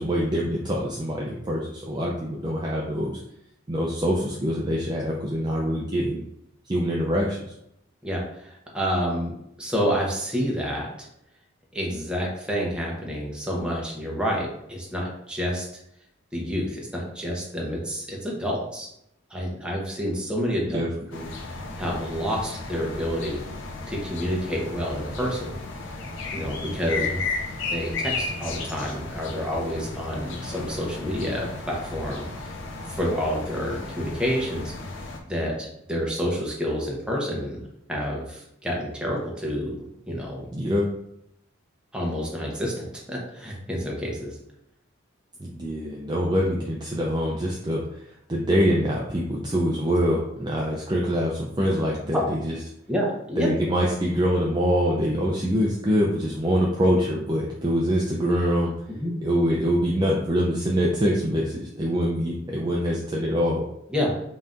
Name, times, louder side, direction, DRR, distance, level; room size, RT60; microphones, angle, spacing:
voice 1, 0.0-3.2 3.7-6.2 6.7-7.5 20.7-20.9 27.0-27.1 40.5-40.9 45.4-52.6 53.4-58.7 59.2-63.6, equal, 20° right, -3 dB, 0.4 m, -24 dB
voice 2, 8.0-11.1 11.7-15.7 16.3-18.9 19.3-20.8 21.1-23.4 23.9-25.6 26.3-27.1 27.7-32.5 32.8-34.7 35.2-37.6 37.9-40.4 41.9-44.4 52.9-53.5 59.0-59.1 63.9-64.1, equal, 5° right, -2 dB, 0.9 m, -29 dB
sound 1, 21.1-35.2, left 3 dB, 65° left, 0.6 m, -34 dB
5.4 x 2.8 x 2.5 m, 0.79 s
head